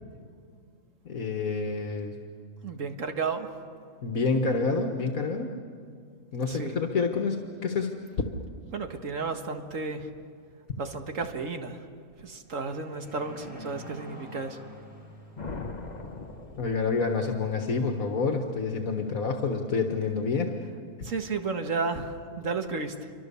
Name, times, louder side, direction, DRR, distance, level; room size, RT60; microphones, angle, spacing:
voice 1, 1.1-2.2 4.0-5.5 6.3-7.9 16.6-20.5, left 4 dB, 75° left, 3 dB, 1.9 m, -28 dB
voice 2, 2.6-3.5 6.5-6.8 8.7-10.1 10.8-11.9 12.2-14.6 21.0-23.1, right 4 dB, 60° right, 5 dB, 2.1 m, -33 dB
sound 1, 12.4-20.3, equal, 5° right, 5.4 m, -49 dB
sound 2, 15.4-17.3, left 3 dB, 30° left, 1.3 m, -40 dB
29.0 x 25.0 x 7.0 m, 2.2 s
omnidirectional pair, 1.5 m